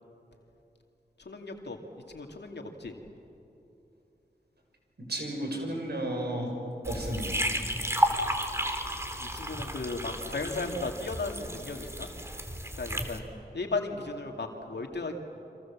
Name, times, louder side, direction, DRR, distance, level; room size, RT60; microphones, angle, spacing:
voice 1, 1.2-1.8 2.1-3.0 9.2-12.1 12.8-13.3 13.5-15.1, left 3 dB, 80° left, 3 dB, 2.4 m, -35 dB
voice 2, 5.0-6.5 6.9-7.4, right 1 dB, 70° right, 2 dB, 6.5 m, -33 dB
sound 1, 6.8-13.2, equal, 15° right, 3.0 m, -32 dB
28.5 x 26.0 x 7.3 m, 2.9 s
cardioid pair, 40°, 17 cm